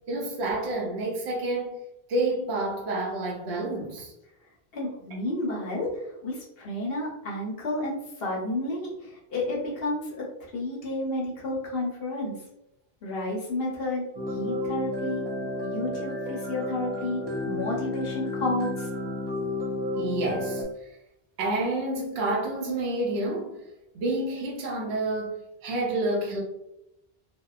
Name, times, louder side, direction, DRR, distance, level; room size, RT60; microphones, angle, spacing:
voice 1, 0.1-1.8 2.1-4.1 15.1-15.2 20.0-20.6 21.4-23.6 23.9-26.4, right 2 dB, 80° right, 0.8 m, -29 dB
voice 2, 4.7-12.3 13.0-14.0 14.3-15.2 15.6-18.9, left 1 dB, 65° left, 0.9 m, -31 dB
sound 1, 14.1-20.6, left 1 dB, 45° right, 0.3 m, -31 dB
2.7 x 2.1 x 2.3 m
omnidirectional pair, 1.1 m